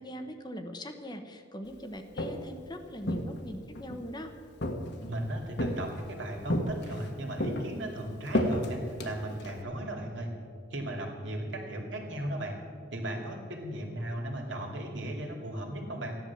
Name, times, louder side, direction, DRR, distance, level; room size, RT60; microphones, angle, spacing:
voice 1, 0.0-4.3, equal, 20° left, 6 dB, 1.0 m, -41 dB
Walk footsteps, 1.9-2.6 3.0-4.1 4.6-5.2 5.6-6.1 6.5-7.1 7.4-9.6, left 1 dB, 55° left, 1.5 m, -32 dB
voice 2, 5.0-10.3 10.7-12.6 12.9-16.2, right 1 dB, 65° right, 1 dB, 2.6 m, -36 dB
15.0 x 11.0 x 7.2 m, 2.2 s
head